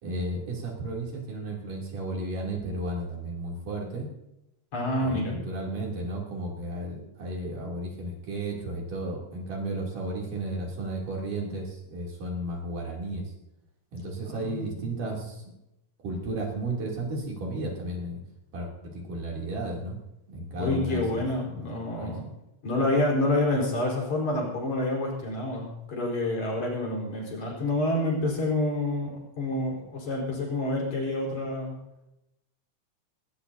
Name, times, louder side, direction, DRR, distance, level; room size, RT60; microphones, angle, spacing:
voice 1, 0.0-4.1 5.0-13.2 13.9-15.4 16.0-18.2 18.5-20.0 20.3-21.2 21.6-21.7 21.9-22.1, right 1 dB, 85° right, -2 dB, 4.7 m, -33 dB
voice 2, 4.7-5.4 14.2-14.8 15.1-15.2 20.6-22.2 22.6-29.1 29.4-31.8, left 1 dB, 60° left, -2 dB, 5.5 m, -28 dB
19.5 x 19.0 x 2.8 m, 0.90 s
omnidirectional pair, 3.6 m